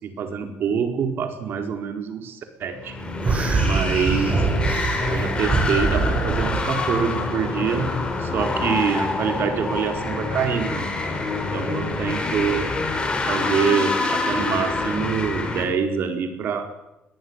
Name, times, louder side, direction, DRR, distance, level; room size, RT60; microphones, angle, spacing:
voice 1, 0.0-3.0 3.6-4.5 5.0-10.9 11.3-12.7 13.3-16.7, right 6 dB, 55° right, 6 dB, 4.4 m, -25 dB
sound 1, 2.7-15.6, left 3 dB, 20° left, 5.6 m, -26 dB
sound 2, 3.2-6.7, right 4 dB, 30° right, 5.7 m, -24 dB
22.0 x 15.0 x 9.7 m, 0.95 s
cardioid pair, 110°, 4 cm